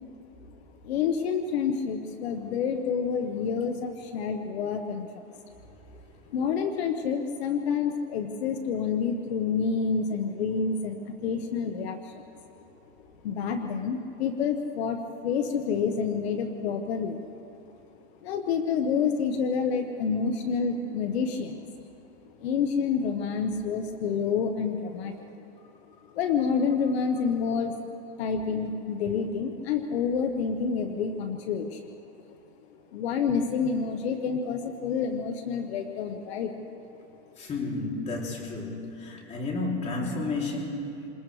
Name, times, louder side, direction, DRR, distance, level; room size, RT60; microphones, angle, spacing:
voice 1, 0.8-5.2 6.3-12.1 13.2-17.2 18.2-21.6 22.4-25.1 26.1-27.8 28.2-31.8 32.9-36.5, left 6 dB, 60° left, 4 dB, 1.5 m, -28 dB
voice 2, 37.4-41.1, left 2 dB, 20° left, -1 dB, 3.3 m, -32 dB
28.0 x 27.5 x 3.4 m, 2.7 s
supercardioid pair, 155°, 35 cm